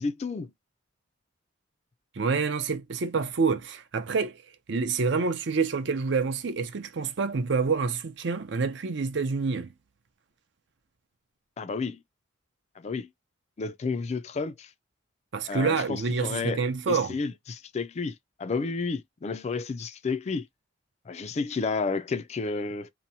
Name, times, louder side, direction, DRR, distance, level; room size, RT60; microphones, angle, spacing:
voice 1, 0.0-0.5 11.6-12.0 12.8-13.1 13.6-14.7 15.5-16.6 16.9-18.1 18.4-20.5 21.1-22.9, left 4 dB, 35° left, 0.3 m, -31 dB
voice 2, 2.1-4.4 4.7-9.7 15.3-17.2, right 4 dB, 65° right, 0.5 m, -27 dB
2.9 x 2.1 x 2.7 m
head